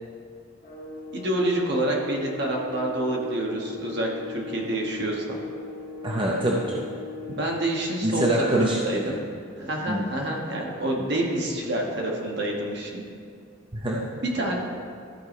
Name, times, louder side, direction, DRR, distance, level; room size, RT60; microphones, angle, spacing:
sound 1, 0.6-7.7, left 5 dB, 40° left, 1.8 m, -38 dB
voice 1, 1.1-5.3 7.3-9.2 9.6-13.0 14.2-14.6, right 1 dB, 55° right, -1 dB, 1.3 m, -27 dB
voice 2, 6.0-6.8 8.0-9.1 9.9-10.1 13.7-14.0, right 1 dB, 25° right, -2 dB, 0.6 m, -25 dB
13.0 x 4.8 x 4.2 m, 2.3 s
head